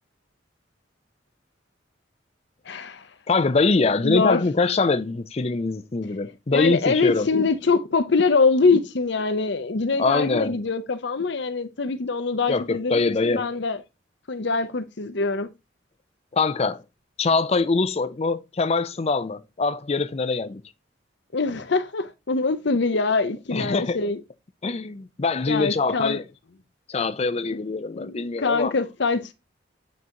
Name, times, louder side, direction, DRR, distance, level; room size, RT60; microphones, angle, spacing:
voice 1, 2.7-3.1 4.0-4.4 6.5-13.8 14.3-15.5 21.3-24.2 25.5-26.2 27.9-29.3, left 4 dB, 65° left, 0.7 m, -24 dB
voice 2, 3.3-7.3 10.0-10.6 12.5-13.6 16.3-16.8 17.2-20.6 23.5-24.0 24.6-26.2 26.9-28.7, left 3 dB, 35° left, 0.5 m, -23 dB
8.5 x 4.0 x 2.8 m
head